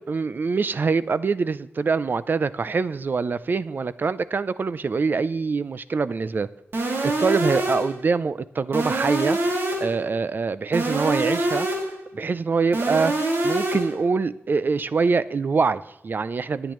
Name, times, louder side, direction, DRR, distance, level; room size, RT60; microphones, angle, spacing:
voice 1, 0.0-6.5 7.2-9.4 9.8-11.8 12.1-13.1 13.4-16.7, right 4 dB, 50° right, 0.5 m, -24 dB
sound 1, 6.7-8.0 8.7-10.0 10.7-12.0 12.7-14.0, right 2 dB, 70° right, 2.4 m, -25 dB
20.5 x 9.0 x 3.1 m
wide cardioid pair, 100°, 4 cm